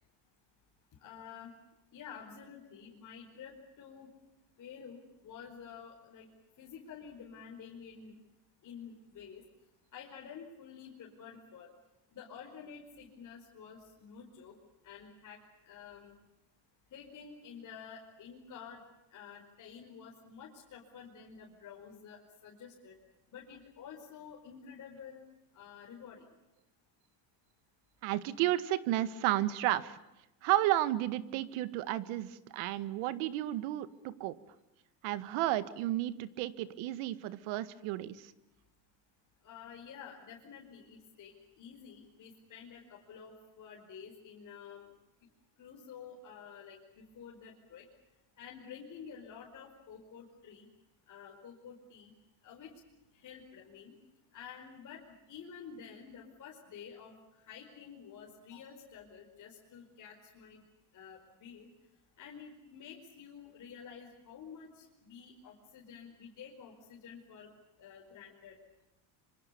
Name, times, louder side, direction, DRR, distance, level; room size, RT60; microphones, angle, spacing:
voice 1, 1.0-1.5 1.9-4.1 4.6-6.3 6.6-8.2 8.6-9.4 9.9-11.7 12.1-14.6 14.8-16.1 16.9-18.8 19.1-23.0 23.3-25.2 25.5-26.2 39.4-44.9 45.6-47.9 48.4-50.7 51.1-52.1 52.4-52.7 53.1-54.0 54.3-57.2 57.4-60.6 60.9-61.7 62.2-67.5 67.8-68.6, left 7 dB, 40° left, -2 dB, 5.0 m, -50 dB
voice 2, 28.0-30.0 30.4-34.4 35.0-38.3, right 14 dB, 70° right, 14 dB, 1.9 m, -32 dB
27.0 x 25.0 x 7.0 m, 0.94 s
cardioid pair, 130°, 49 cm